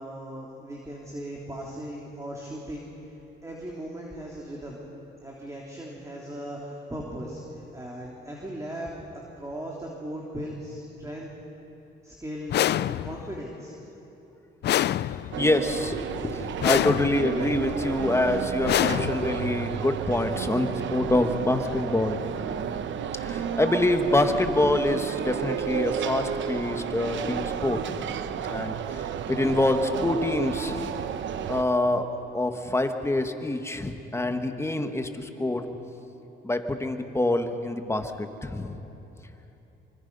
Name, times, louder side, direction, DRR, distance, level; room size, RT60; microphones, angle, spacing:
voice 1, 0.0-2.9 3.4-4.8 5.2-8.9 9.4-11.3 12.0-12.6 12.8-13.7, right 1 dB, 15° right, -2 dB, 3.3 m, -38 dB
sound 1, 12.5-13.4 14.6-15.6 16.6-17.4 18.6-19.6, left 12 dB, 60° left, 0.4 m, -26 dB
sound 2, 15.3-31.6, right 8 dB, 70° right, 1.0 m, -32 dB
voice 2, 15.4-22.2 23.1-31.0 31.5-35.7 36.4-38.8, left 2 dB, 15° left, 6 dB, 1.6 m, -26 dB
25.0 x 24.5 x 5.5 m, 3.0 s
cardioid pair, 90°, 20 cm